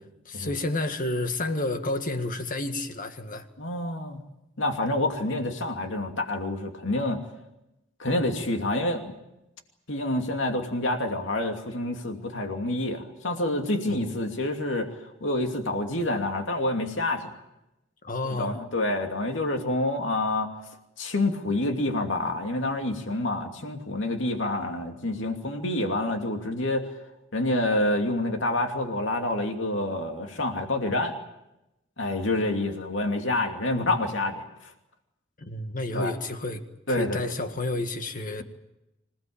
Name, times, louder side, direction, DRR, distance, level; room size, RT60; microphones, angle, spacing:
voice 1, 0.3-3.5 13.9-14.1 18.0-18.6 35.4-36.6 36.9-38.4, left 2 dB, 45° left, 1.9 m, -30 dB
voice 2, 3.6-4.2 4.6-7.2 8.0-9.2 9.9-17.3 18.2-20.6 21.0-26.9 27.3-31.2 32.0-34.7 35.9-36.1 36.9-37.2, left 2 dB, 70° left, 2.7 m, -28 dB
26.5 x 18.0 x 8.8 m
head